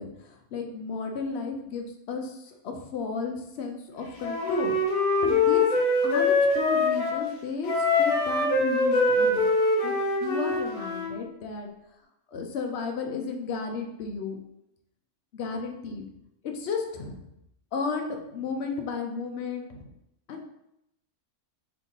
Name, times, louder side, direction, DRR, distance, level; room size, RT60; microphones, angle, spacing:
voice 1, 0.0-4.8 5.2-5.7 6.0-9.5 9.8-9.9 10.2-11.7 12.3-14.4 15.3-16.1 16.4-17.2 17.7-19.9 20.3-20.5, left 4 dB, 60° left, 3 dB, 0.7 m, -33 dB
Wind instrument woodwind instrument, 4.2-7.2 7.6-11.1, left 2 dB, 75° left, 1.3 m, -24 dB
3.4 x 2.9 x 3.9 m, 0.81 s
omnidirectional pair, 1.6 m